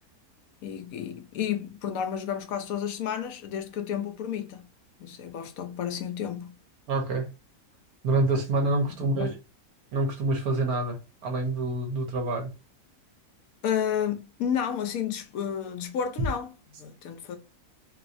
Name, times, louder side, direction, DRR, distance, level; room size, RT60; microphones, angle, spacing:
voice 1, 0.6-4.7 5.0-6.6 9.0-9.3 13.6-17.4, left 8 dB, 70° left, 0.9 m, -31 dB
voice 2, 6.9-7.3 8.0-9.3 9.9-11.0 11.2-12.5, right 2 dB, 75° right, 1.4 m, -26 dB
3.1 x 3.0 x 2.5 m
omnidirectional pair, 1.6 m